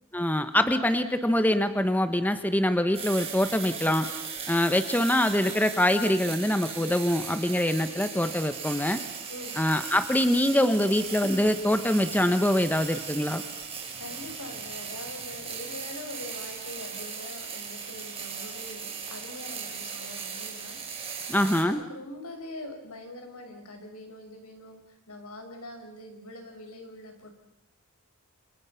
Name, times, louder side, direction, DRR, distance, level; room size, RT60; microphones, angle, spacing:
voice 1, 0.1-4.1 4.5-9.0 9.6-13.4 21.3-21.8, left 1 dB, 10° left, 9 dB, 1.2 m, -24 dB
sound 1, 2.9-21.6, right 6 dB, 25° right, 5.3 m, -38 dB
voice 2, 14.0-24.8 25.1-27.3, left 1 dB, 80° left, 4 dB, 6.2 m, -43 dB
28.5 x 28.5 x 5.9 m, 0.80 s
head